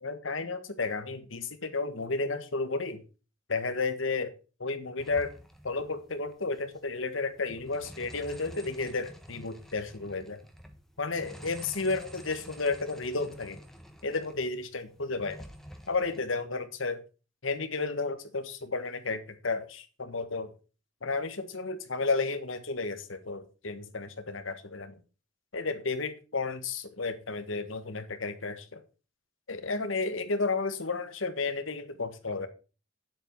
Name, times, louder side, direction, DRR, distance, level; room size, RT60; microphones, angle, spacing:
voice 1, 0.0-3.0 3.5-4.3 4.6-5.3 5.6-10.4 11.0-13.6 14.0-15.5 15.9-17.0 17.4-20.5 21.0-25.0 25.5-28.8 29.5-32.5, left 3 dB, 80° left, 9 dB, 1.5 m, -32 dB
sound 1, 5.0-6.6 6.9-7.0 7.3-14.5 14.9-16.2, equal, ahead, 1.3 m, -49 dB
9.8 x 7.9 x 4.6 m, 0.34 s
head